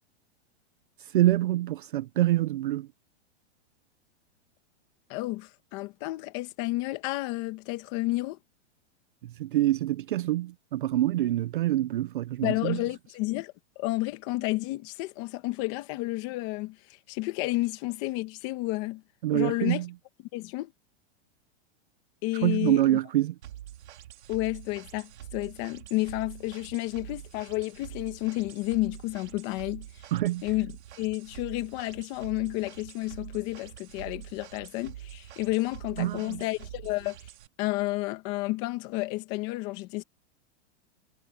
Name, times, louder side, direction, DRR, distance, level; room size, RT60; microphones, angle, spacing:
voice 1, 1.1-2.9 9.2-12.8 19.2-19.9 22.4-23.3 30.1-30.4 36.0-36.4, right 14 dB, 50° right, 0.4 m, -26 dB
voice 2, 5.1-8.4 12.4-16.8 17.1-19.0 19.3-19.8 20.3-20.7 22.2-23.0 24.3-29.9 30.4-30.7 31.0-37.2 37.6-40.0, left 20 dB, 25° left, 1.4 m, -31 dB
sound 1, 23.4-37.5, right 12 dB, 70° right, 3.0 m, -45 dB
supercardioid pair, 180°, 35 cm